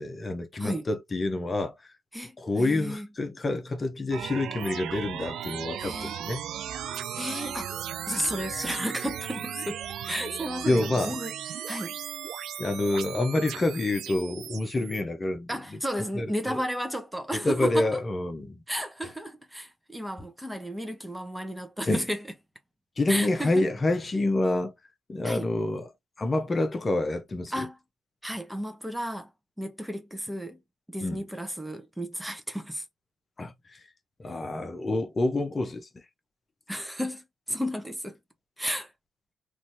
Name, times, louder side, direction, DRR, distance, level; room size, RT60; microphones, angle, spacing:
voice 1, 0.0-1.9 2.4-6.4 10.7-11.2 12.6-15.8 16.2-16.6 17.4-18.6 21.9-22.0 23.0-24.7 25.1-25.9 26.2-27.7 31.0-31.2 33.4-33.8 34.2-35.9, left 2 dB, 35° left, 0.9 m, -27 dB
voice 2, 2.1-3.1 5.8-6.2 7.1-7.7 8.1-12.0 15.5-18.0 18.7-22.2 23.1-23.7 25.2-25.4 27.5-27.8 28.2-29.3 29.6-30.6 30.9-32.8 36.7-38.2 38.6-38.9, equal, 5° right, 0.8 m, -33 dB
sound 1, 4.1-15.0, right 10 dB, 75° right, 0.3 m, -37 dB
3.1 x 2.7 x 2.6 m
supercardioid pair, 65°, 0 cm